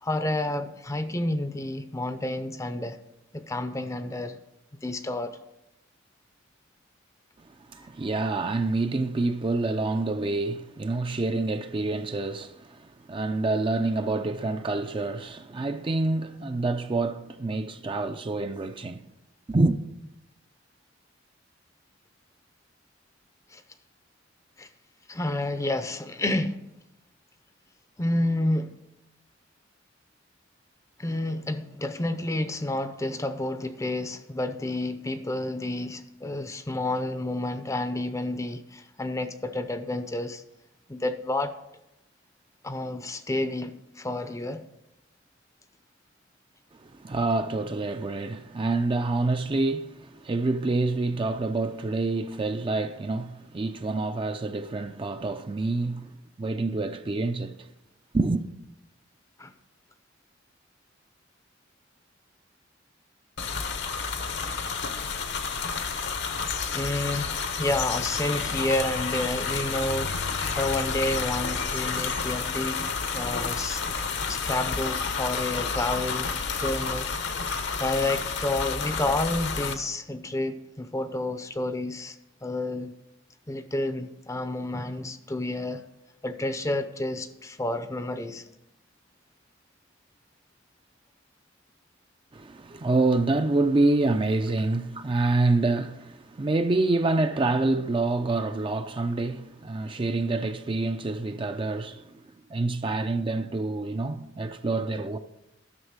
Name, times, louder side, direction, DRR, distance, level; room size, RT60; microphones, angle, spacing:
voice 1, 0.0-3.0 3.3-4.4 4.8-5.4 23.5-23.6 24.6-24.7 25.1-26.6 28.0-28.7 31.0-40.4 40.9-41.5 42.6-44.6 59.4-59.5 66.7-72.8 73.1-73.8 74.3-77.1 77.8-82.9 83.5-85.8 86.2-88.4, left 1 dB, 15° left, 0.6 m, -30 dB
voice 2, 7.4-19.0 19.5-19.8 46.8-57.7 58.1-58.4 92.3-102.2 102.5-105.2, right 2 dB, 25° right, 0.4 m, -27 dB
sound 1, 63.4-79.7, left 5 dB, 60° left, 0.9 m, -30 dB
11.0 x 6.4 x 6.6 m
head